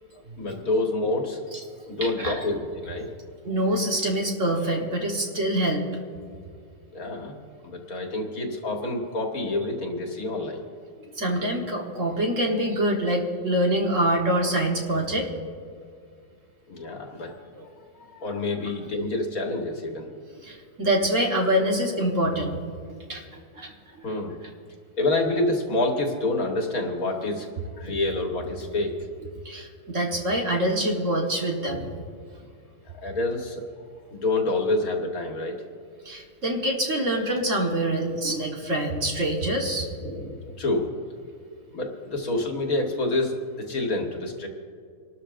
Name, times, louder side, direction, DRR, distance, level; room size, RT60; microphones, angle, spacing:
voice 1, 0.4-1.4 1.9-3.1 6.9-7.4 7.6-10.7 11.0-11.1 16.7-17.4 18.1-20.1 24.0-24.4 25.0-27.5 27.8-29.1 32.9-33.8 34.1-35.6 40.0-40.9 41.7-44.5, left 2 dB, 55° left, 1 dB, 1.8 m, -27 dB
voice 2, 1.9-2.4 3.4-5.9 11.2-15.3 17.5-17.7 20.4-22.6 23.1-23.2 23.6-23.7 29.4-31.9 36.0-39.9, right 1 dB, 45° right, 0 dB, 1.6 m, -25 dB
28.0 x 12.5 x 2.5 m, 2.2 s
omnidirectional pair, 2.0 m